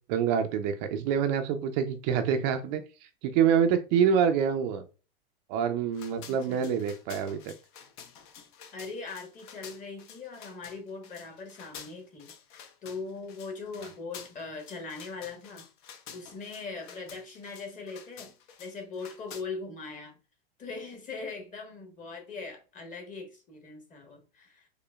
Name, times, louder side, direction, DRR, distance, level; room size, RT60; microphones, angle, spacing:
voice 1, 0.1-2.8 3.2-4.8 5.5-7.5, right 7 dB, 45° right, 7 dB, 0.4 m, -26 dB
sound 1, 5.9-19.4, left 8 dB, 55° left, 0.7 m, -49 dB
voice 2, 6.3-6.7 8.7-15.6 16.1-18.3 18.6-20.2 20.6-24.7, left 4 dB, 25° left, 3 dB, 1.1 m, -41 dB
4.9 x 2.1 x 2.2 m, 0.33 s
hypercardioid pair, 110°, 30 cm